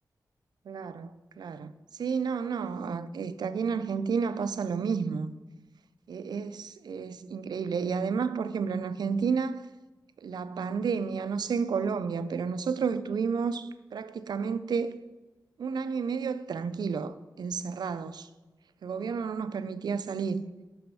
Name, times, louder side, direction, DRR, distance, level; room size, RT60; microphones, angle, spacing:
voice 1, 0.7-1.7 2.0-5.3 6.1-9.7 10.2-15.0 15.6-18.3 18.8-20.4, right 5 dB, 85° right, 0.4 m, -31 dB
6.3 x 6.1 x 6.1 m
wide cardioid pair, 135°, 7 cm